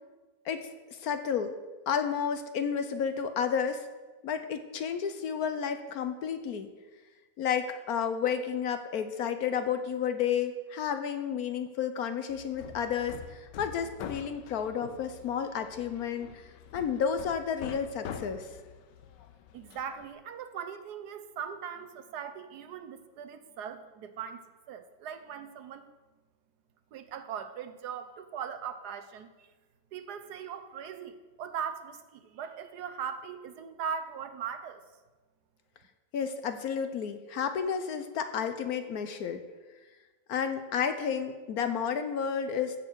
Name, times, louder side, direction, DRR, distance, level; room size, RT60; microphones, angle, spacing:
voice 1, 0.4-1.6 1.9-3.9 4.2-6.7 7.4-16.4 16.7-18.5 36.1-39.4 40.3-42.8, left 7 dB, 65° left, 9 dB, 1.2 m, -31 dB
Hammer, 12.3-20.1, left 7 dB, 85° left, 1.4 m, -45 dB
voice 2, 19.5-25.9 26.9-29.5 29.9-34.8, right 7 dB, 75° right, 10 dB, 1.3 m, -40 dB
15.0 x 6.7 x 4.6 m, 1.3 s
omnidirectional pair, 1.8 m